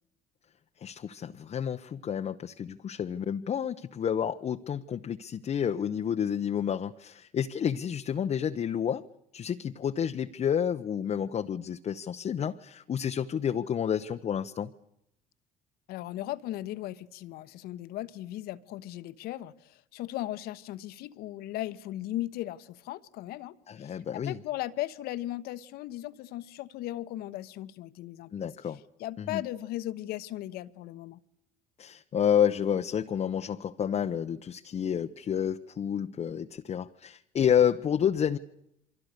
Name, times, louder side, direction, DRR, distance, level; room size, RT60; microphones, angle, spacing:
voice 1, 0.8-9.0 9.3-14.7 23.7-24.4 28.3-28.8 29.2-29.4 31.8-38.4, left 8 dB, 35° left, 0.9 m, -30 dB
voice 2, 15.9-31.2, left 14 dB, 60° left, 1.1 m, -37 dB
28.5 x 23.5 x 6.7 m
hypercardioid pair, 60°, 18 cm